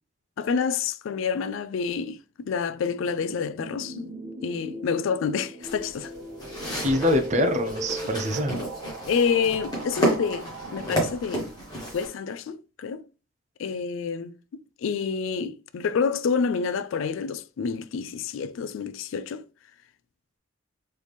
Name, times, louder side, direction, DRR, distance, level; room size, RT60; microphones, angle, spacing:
voice 1, 0.4-4.1 4.4-6.1 9.1-11.5 11.9-13.0 13.6-19.4, left 6 dB, 65° left, 0.3 m, -28 dB
sound 1, 2.7-12.2, right 1 dB, 65° right, 1.0 m, -39 dB
sound 2, 5.6-12.1, right 1 dB, 20° left, 1.3 m, -31 dB
voice 2, 6.8-8.6, left 1 dB, 35° right, 0.5 m, -24 dB
4.1 x 3.2 x 3.4 m
head